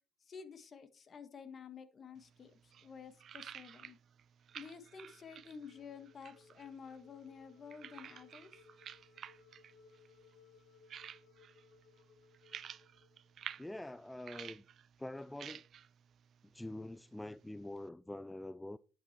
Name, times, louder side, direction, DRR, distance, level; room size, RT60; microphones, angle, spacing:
voice 1, 0.2-4.0 4.5-8.5, left 6 dB, 40° left, 1.5 m, -51 dB
sound 1, 2.2-17.9, right 9 dB, 55° right, 0.6 m, -53 dB
sound 2, 4.5-13.7, left 6 dB, 80° left, 2.4 m, -65 dB
voice 2, 13.6-14.6 15.0-15.7 16.4-18.8, left 1 dB, 10° left, 0.4 m, -45 dB
10.5 x 6.3 x 4.4 m
supercardioid pair, 90°, 0 cm